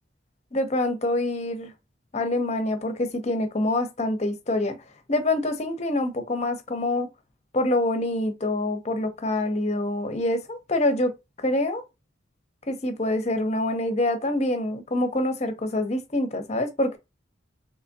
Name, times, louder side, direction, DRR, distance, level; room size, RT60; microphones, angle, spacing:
voice 1, 0.5-1.7 2.1-4.8 5.1-7.1 7.5-11.1 11.4-11.8 12.7-17.0, left 1 dB, 35° left, 0.6 m, -26 dB
3.4 x 3.1 x 2.7 m
head